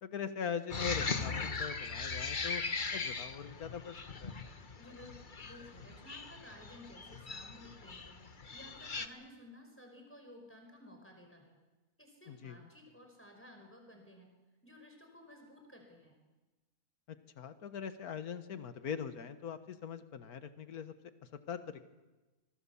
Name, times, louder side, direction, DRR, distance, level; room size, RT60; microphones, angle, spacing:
voice 1, 0.0-2.6 2.9-4.3 12.3-12.7 17.1-20.9 21.3-21.8, left 7 dB, 75° left, 10 dB, 1.8 m, -42 dB
sound 1, 0.7-9.1, left 4 dB, 35° left, 1.3 m, -39 dB
voice 2, 4.8-8.3 8.5-11.5 12.0-14.3 14.6-16.1, left 1 dB, 10° left, 2 dB, 5.1 m, -55 dB
26.5 x 23.0 x 7.2 m, 1.2 s
omnidirectional pair, 1.6 m